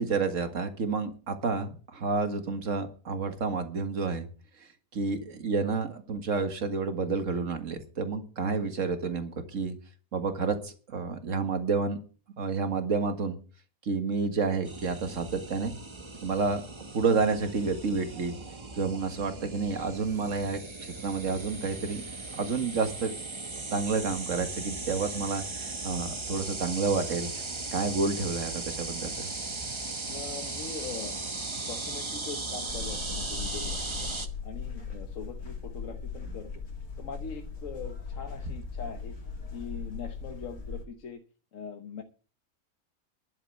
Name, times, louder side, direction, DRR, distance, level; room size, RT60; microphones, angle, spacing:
voice 1, 0.0-4.3 4.6-9.7 10.1-12.0 12.4-13.4 13.8-15.7 16.2-16.6 16.9-18.3 18.7-22.0 22.3-23.1 23.4-27.4 27.7-29.3, right 4 dB, 60° right, 7 dB, 2.1 m, -30 dB
sound 1, 14.6-34.3, right 3 dB, 20° right, 1.0 m, -37 dB
voice 2, 30.1-34.1 34.4-36.5 37.0-39.1 39.5-41.2 41.5-42.0, left 5 dB, 65° left, 5 dB, 1.5 m, -42 dB
sound 2, 32.7-40.8, left 5 dB, 90° left, 3.7 m, -39 dB
11.5 x 7.8 x 8.0 m, 0.39 s
omnidirectional pair, 1.5 m